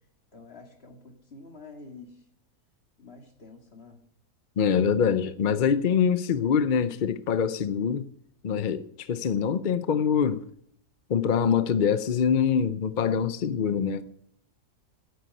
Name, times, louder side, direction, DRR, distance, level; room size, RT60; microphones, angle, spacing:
voice 1, 0.3-2.2 3.0-4.0, left 3 dB, 40° left, 2.5 m, -48 dB
voice 2, 4.6-8.1 8.4-10.4 11.1-14.0, left 7 dB, 65° left, 0.4 m, -24 dB
10.5 x 8.1 x 9.3 m
omnidirectional pair, 1.7 m